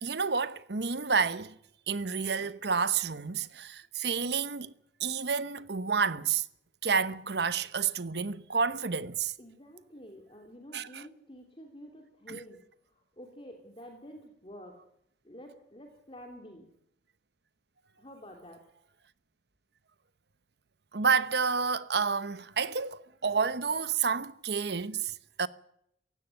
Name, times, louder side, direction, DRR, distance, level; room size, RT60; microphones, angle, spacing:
voice 1, 0.0-1.5 1.9-4.7 5.0-6.4 6.8-9.3 10.7-11.0 20.9-25.1 25.4-25.5, right 5 dB, 65° right, 1.0 m, -29 dB
voice 2, 9.4-14.8 15.2-16.7 18.0-18.6, equal, 30° left, 3.0 m, -49 dB
17.5 x 16.0 x 9.2 m
head